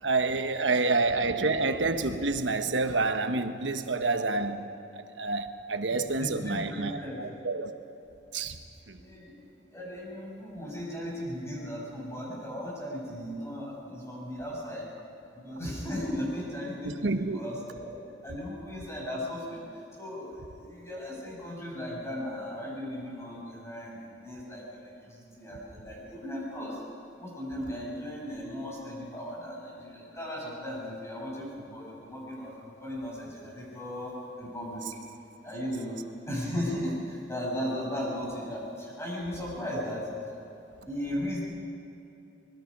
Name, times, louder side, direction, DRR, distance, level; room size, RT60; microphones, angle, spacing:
voice 1, 0.0-4.7 4.9-7.7 8.3-8.6 8.9-9.0 16.8-17.4, right 3 dB, 80° right, 8 dB, 1.2 m, -28 dB
voice 2, 5.9-7.2 8.9-9.4 9.7-14.9 15.3-17.1 17.3-17.9 18.2-19.6 20.0-26.8 27.2-35.0 35.4-36.0 36.3-40.1 40.9-41.4, equal, 15° left, -4 dB, 6.6 m, -36 dB
24.5 x 21.0 x 5.4 m, 2.9 s
head